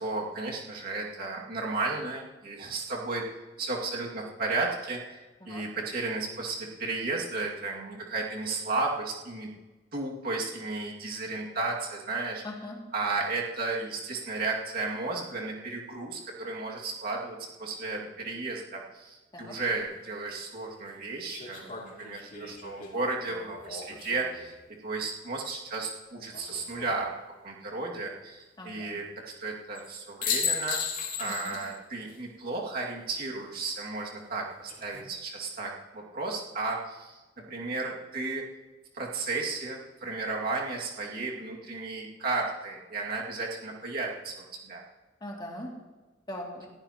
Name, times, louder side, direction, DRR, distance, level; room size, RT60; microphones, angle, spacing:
voice 1, 0.0-3.3 3.6-5.2 5.5-9.5 9.9-12.4 12.9-24.5 24.8-27.1 27.4-37.2 37.5-38.5 38.9-44.8, right 3 dB, 55° right, -2 dB, 2.3 m, -34 dB
voice 2, 12.4-12.8 19.3-19.6 28.6-28.9 31.3-31.5 45.2-45.7 46.3-46.7, left 1 dB, 25° left, -2 dB, 2.6 m, -40 dB
sound 1, 19.8-19.9 21.3-24.5 26.3-27.0 29.7-29.9 30.2-31.7 32.1-32.2 34.5-35.0, left 7 dB, 50° left, 2.8 m, -35 dB
21.5 x 15.0 x 3.0 m, 1.2 s
head